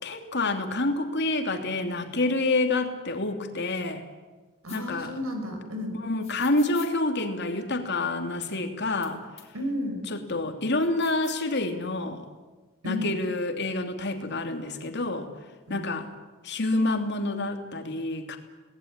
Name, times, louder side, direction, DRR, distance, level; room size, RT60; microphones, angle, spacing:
voice 1, 0.0-4.0 4.7-5.1 6.0-9.2 10.1-12.2 12.8-15.3 15.7-16.1 16.4-18.4, left 2 dB, 50° left, 5 dB, 3.0 m, -28 dB
voice 2, 4.6-6.0 9.5-10.0 12.8-13.1 15.7-15.9, left 1 dB, 75° right, 5 dB, 5.9 m, -32 dB
sound 1, 4.7-4.8 6.2-6.9 8.4-8.5 9.0-9.1 9.4-9.5 10.8-11.5, left 10 dB, 30° left, 3.9 m, -47 dB
27.0 x 19.5 x 9.9 m, 1.3 s
head